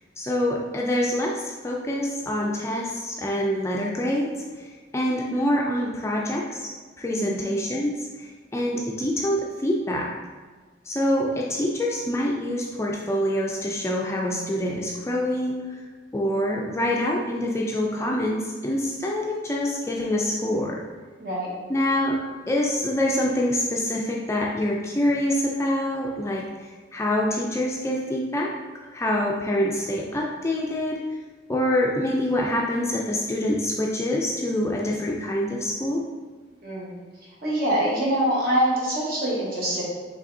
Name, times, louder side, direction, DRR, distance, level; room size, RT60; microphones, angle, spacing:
voice 1, 0.2-4.7 4.9-10.2 10.9-15.8 16.1-20.8 21.7-22.2 22.5-28.5 28.9-31.0 31.5-36.0, left 1 dB, 15° left, -1 dB, 0.3 m, -26 dB
voice 2, 7.1-7.5 21.2-21.5 36.6-37.0 37.4-39.8, right 1 dB, 50° right, -6 dB, 1.3 m, -25 dB
5.0 x 3.2 x 2.7 m, 1.4 s
head